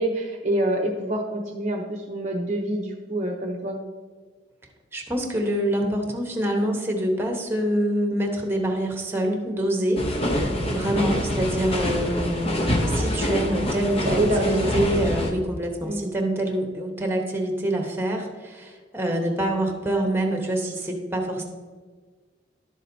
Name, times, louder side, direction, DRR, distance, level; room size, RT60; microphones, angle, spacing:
voice 1, 0.0-3.8 14.0-15.0 15.9-16.0, right 1 dB, 40° right, -1 dB, 0.7 m, -26 dB
voice 2, 4.9-10.0 10.7-21.4, right 1 dB, 15° right, 2 dB, 1.1 m, -26 dB
sound 1, 10.0-15.3, left 1 dB, 35° left, 0.9 m, -26 dB
11.0 x 7.4 x 2.7 m, 1.4 s
head